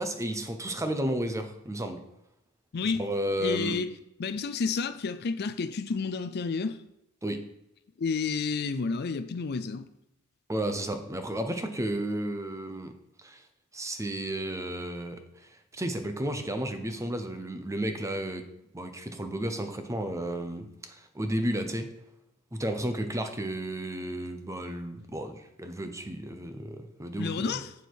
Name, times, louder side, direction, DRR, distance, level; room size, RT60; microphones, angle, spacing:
voice 1, 0.0-2.0 2.8-3.8 7.2-7.4 10.5-12.9 13.2-13.4 13.7-15.2 15.7-18.4 18.7-21.9 22.5-27.6, right 1 dB, 15° right, 0.7 m, -32 dB
voice 2, 2.7-3.1 3.4-6.8 8.0-9.9 27.2-27.7, left 4 dB, 50° left, 0.5 m, -30 dB
8.0 x 6.8 x 4.6 m
head